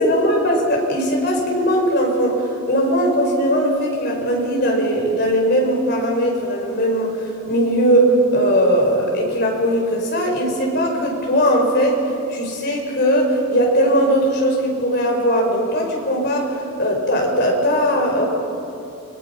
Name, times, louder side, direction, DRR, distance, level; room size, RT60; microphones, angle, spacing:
voice 1, 0.0-7.1 7.5-12.0 12.3-16.5 16.8-18.3, equal, 50° left, 0 dB, 5.2 m, -19 dB
29.5 x 22.0 x 5.8 m, 2.7 s
head